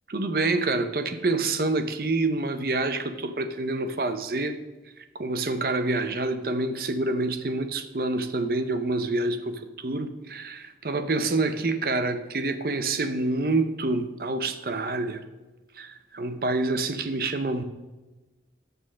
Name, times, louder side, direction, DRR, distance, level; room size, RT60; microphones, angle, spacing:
voice 1, 0.1-4.6 5.1-15.2 15.8-17.6, right 2 dB, 55° right, 9 dB, 0.7 m, -27 dB
7.4 x 6.4 x 6.2 m, 1.2 s
head